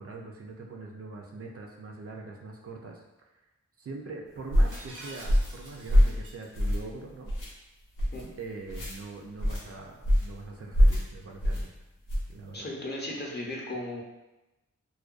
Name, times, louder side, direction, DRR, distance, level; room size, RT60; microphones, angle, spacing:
voice 1, 0.0-3.0 3.8-7.3 8.4-11.7 12.3-12.7, right 3 dB, 50° right, 0 dB, 0.4 m, -42 dB
sound 1, 4.5-4.8 5.2-5.6 5.9-6.2 6.5-6.9 7.2-7.5 8.0-8.2 8.7-8.9 9.4-9.6 10.0-10.3 10.7-11.0 11.4-11.6 12.1-12.3, equal, 85° left, 0.6 m, -23 dB
Shatter, 4.7-6.5, right 1 dB, 80° right, 0.8 m, -47 dB
voice 2, 12.5-14.0, left 1 dB, 35° left, -2 dB, 0.6 m, -36 dB
2.4 x 2.2 x 2.4 m, 1.0 s
cardioid pair, 45°, 30 cm